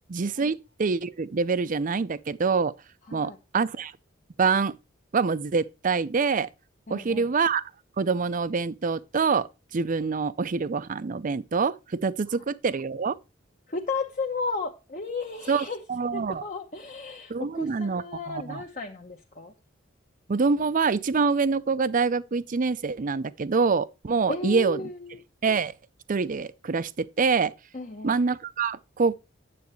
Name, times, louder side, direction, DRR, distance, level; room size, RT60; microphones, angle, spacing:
voice 1, 0.1-2.7 3.1-3.9 4.4-4.7 5.1-6.5 6.9-7.6 8.0-13.2 15.5-16.4 17.3-18.6 20.3-24.8 25.4-25.7 26.1-27.5 28.0-29.2, right 4 dB, 45° right, 0.5 m, -26 dB
voice 2, 6.9-7.3 13.7-15.8 16.1-19.5 24.3-25.2 27.7-28.1, left 3 dB, 40° left, 1.0 m, -34 dB
9.4 x 7.9 x 3.1 m
head